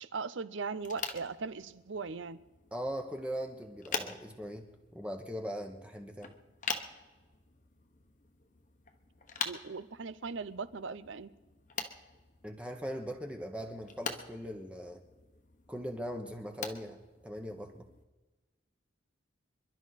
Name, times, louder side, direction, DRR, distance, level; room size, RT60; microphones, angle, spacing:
voice 1, 0.0-2.4 9.4-11.3, right 4 dB, 75° right, 16 dB, 0.7 m, -39 dB
sound 1, 0.8-18.0, left 5 dB, 40° left, 1.1 m, -45 dB
voice 2, 2.7-6.3 12.4-15.0 15.7-17.9, equal, 5° right, 4 dB, 1.1 m, -40 dB
27.0 x 11.5 x 4.2 m, 1.2 s
head